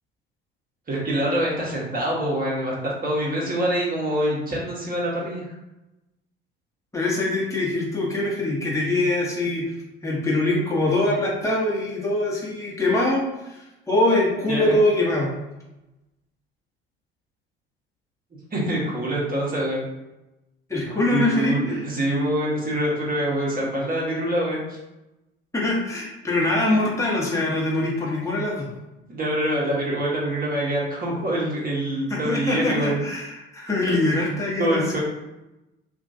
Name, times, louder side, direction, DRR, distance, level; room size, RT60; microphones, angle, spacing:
voice 1, 0.9-5.5 14.5-14.7 18.5-19.8 21.1-24.8 29.1-33.0 33.9-34.0 34.6-35.0, right 1 dB, 30° right, -4 dB, 1.3 m, -25 dB
voice 2, 6.9-9.7 10.0-15.3 20.7-21.8 25.5-28.7 32.1-34.8, left 2 dB, 10° left, -4 dB, 1.2 m, -23 dB
2.8 x 2.6 x 2.7 m, 0.97 s
figure-of-eight pair, 55°, 30 cm